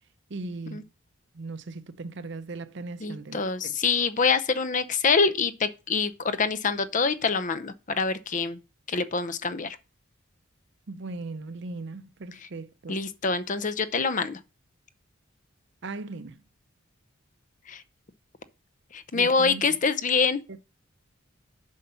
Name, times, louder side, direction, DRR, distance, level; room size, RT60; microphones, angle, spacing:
voice 1, 0.3-0.9 1.3-3.7 10.9-13.0 15.8-16.4 19.1-19.6 20.5-20.8, right 3 dB, 60° right, 0.6 m, -38 dB
voice 2, 3.0-8.6 8.9-9.8 12.9-14.4 17.7-17.8 18.9-20.4, left 5 dB, 40° left, 0.6 m, -25 dB
7.5 x 5.4 x 5.7 m
head